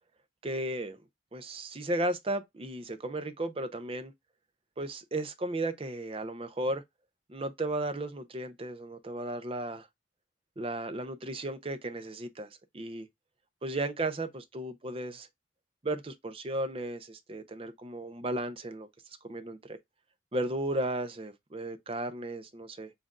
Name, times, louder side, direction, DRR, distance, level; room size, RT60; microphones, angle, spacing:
voice 1, 0.4-1.0 1.3-4.1 4.8-6.8 7.3-9.9 10.6-13.1 13.6-15.3 15.8-18.9 19.2-19.8 20.3-22.9, right 1 dB, 30° right, 0.6 m, -35 dB
7.4 x 2.6 x 2.3 m
head